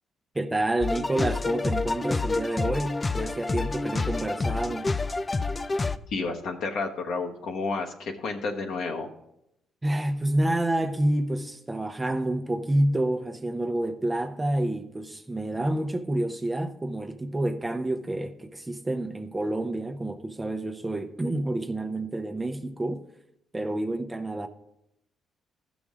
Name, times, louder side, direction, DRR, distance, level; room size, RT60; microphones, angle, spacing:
voice 1, 0.3-4.9 9.8-23.0 23.5-24.5, right 1 dB, 15° right, 0.7 m, -28 dB
sound 1, 0.8-6.0, left 3 dB, 25° left, 0.4 m, -28 dB
voice 2, 6.1-9.1, left 4 dB, 75° left, 1.2 m, -31 dB
14.5 x 6.2 x 3.6 m
cardioid pair, 90°, 0 cm